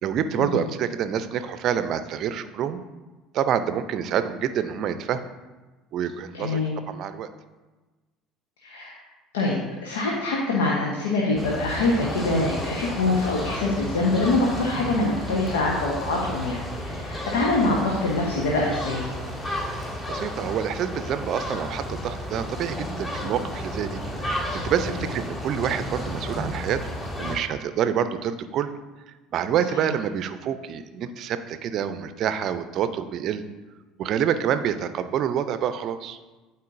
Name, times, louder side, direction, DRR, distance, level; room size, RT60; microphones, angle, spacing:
voice 1, 0.0-2.8 3.3-5.3 5.9-6.6 6.9-7.3 19.5-26.8 27.2-28.7 29.3-33.4 34.0-36.2, right 9 dB, 55° right, 11 dB, 0.5 m, -27 dB
voice 2, 6.3-6.8 8.6-8.9 9.3-19.1 29.8-29.9, left 2 dB, 75° left, -3 dB, 1.1 m, -24 dB
sound 1, 11.4-27.4, equal, 25° left, 2.3 m, -32 dB
12.0 x 4.2 x 2.6 m, 1.2 s
hypercardioid pair, 65°, 0 cm